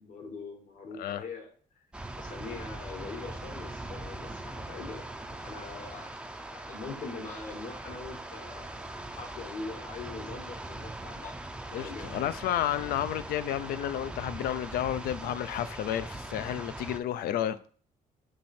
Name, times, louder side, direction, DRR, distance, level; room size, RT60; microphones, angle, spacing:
voice 1, 0.0-1.8 2.1-11.3 11.7-12.1, left 4 dB, 60° left, 1.3 m, -43 dB
sound 1, 1.9-17.0, right 2 dB, 5° right, 0.4 m, -41 dB
voice 2, 11.7-17.6, left 11 dB, 80° left, 0.5 m, -31 dB
7.4 x 3.2 x 4.3 m
cardioid pair, 155°, 15 cm